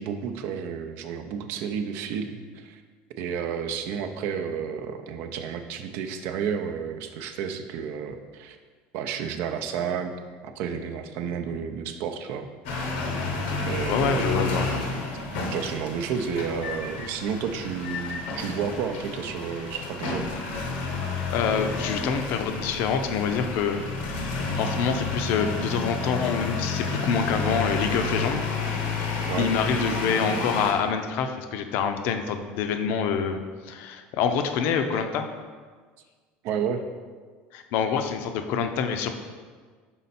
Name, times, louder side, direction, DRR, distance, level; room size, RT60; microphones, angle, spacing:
voice 1, 0.0-2.8 3.2-8.6 8.9-10.1 10.4-12.5 13.7-14.8 15.5-20.3 29.3-29.5 36.4-36.8, right 7 dB, 60° right, 7 dB, 0.5 m, -31 dB
sound 1, 12.6-30.7, left 3 dB, 90° left, 0.9 m, -30 dB
voice 2, 13.9-14.7 21.3-23.8 24.1-33.4 33.7-35.2 37.5-39.1, left 6 dB, 60° left, 7 dB, 0.5 m, -26 dB
5.6 x 4.2 x 4.2 m, 1.5 s
cardioid pair, 150°, 4 cm